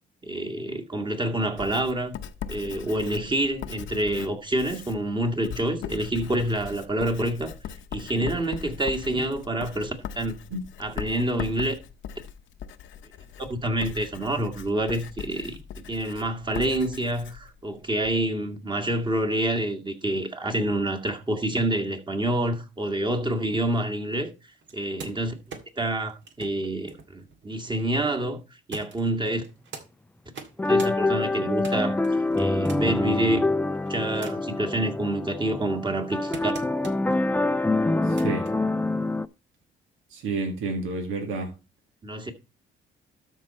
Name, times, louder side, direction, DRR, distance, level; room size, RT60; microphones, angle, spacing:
voice 1, 0.2-2.2 2.5-7.5 7.9-10.4 10.8-11.8 13.4-24.3 24.7-25.4 25.8-28.4 28.7-29.4 30.7-32.0 32.4-33.4 33.9-36.5 42.0-42.3, right 1 dB, 25° right, 2.0 m, -27 dB
Writing, 1.6-18.2, left 8 dB, 75° left, 0.8 m, -40 dB
sound 1, 24.6-27.9 28.7-29.9 30.3-30.9 31.3-33.0 33.7-34.6 35.1-37.2 37.9-38.5 39.6-39.7, right 4 dB, 70° right, 2.0 m, -44 dB
sound 2, 30.6-39.3, left 2 dB, 10° left, 0.5 m, -25 dB
voice 2, 38.1-38.4 40.1-41.5, right 3 dB, 85° right, 1.9 m, -30 dB
12.5 x 4.7 x 4.3 m
cardioid pair, 90°, 20 cm